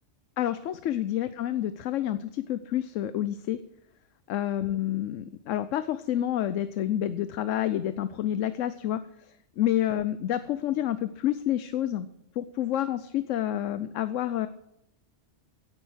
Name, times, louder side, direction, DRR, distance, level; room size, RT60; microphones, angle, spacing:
voice 1, 0.4-3.6 4.3-12.1 12.4-14.5, left 12 dB, 90° left, 13 dB, 1.0 m, -29 dB
17.0 x 7.3 x 6.3 m, 0.80 s
omnidirectional pair, 1.3 m